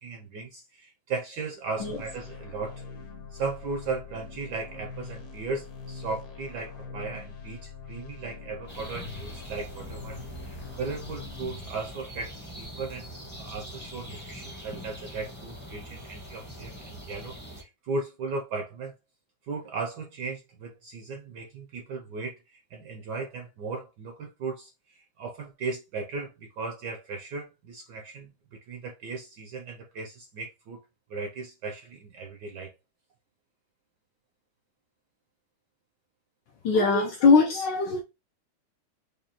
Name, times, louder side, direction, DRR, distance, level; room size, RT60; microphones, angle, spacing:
voice 1, 0.0-2.8 3.3-18.9 19.4-30.8 31.1-32.7, right 4 dB, 75° right, 1.0 m, -37 dB
sound 1, 1.8-11.5, left 5 dB, 55° left, 1.1 m, -43 dB
sound 2, 8.7-17.6, equal, 10° left, 0.5 m, -42 dB
voice 2, 36.6-38.0, left 4 dB, 75° left, 1.0 m, -21 dB
4.9 x 2.3 x 2.8 m
omnidirectional pair, 2.4 m